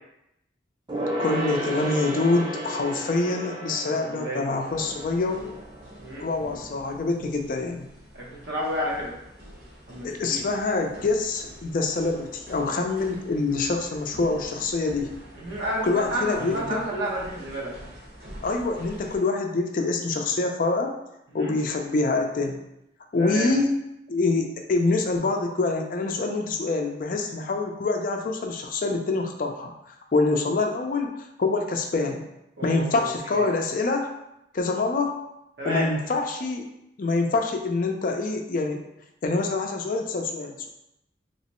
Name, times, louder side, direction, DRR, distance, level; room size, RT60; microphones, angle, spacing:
Gong, 0.9-6.8 7.1-7.2, right 1 dB, 25° right, 0.6 m, -33 dB
voice 1, 1.2-5.5 6.2-7.9 10.0-15.1 15.8-16.8 18.4-20.9 21.3-22.6 23.1-23.7 24.1-29.7 30.1-31.1 31.4-32.2 32.6-34.1 34.5-35.1 35.6-36.7 37.0-38.8 39.2-40.7, left 3 dB, 50° left, 3 dB, 0.4 m, -25 dB
voice 2, 3.8-4.6 6.0-6.2 8.1-9.1 9.9-10.4 15.3-17.7 21.3-21.6 23.2-23.5 32.6-33.5 35.6-35.9, equal, 85° right, -4 dB, 1.1 m, -31 dB
sound 1, 4.6-19.2, right 1 dB, 55° right, 1.1 m, -45 dB
3.1 x 3.0 x 2.9 m, 0.84 s
head